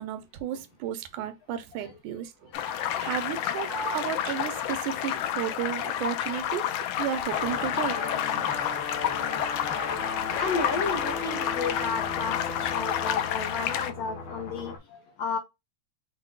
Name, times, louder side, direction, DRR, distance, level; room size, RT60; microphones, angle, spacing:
voice 1, 0.0-6.7 7.0-8.0, right 10 dB, 90° right, 2.2 m, -33 dB
sound 1, 2.5-13.9, left 10 dB, 90° left, 1.4 m, -30 dB
Sliding door, 3.6-7.2 7.5-8.8, right 5 dB, 60° right, 1.0 m, -45 dB
sound 2, 7.3-14.8, left 4 dB, 55° left, 1.4 m, -35 dB
voice 2, 10.4-15.4, left 5 dB, 75° left, 1.5 m, -32 dB
6.3 x 2.2 x 3.8 m
omnidirectional pair, 3.5 m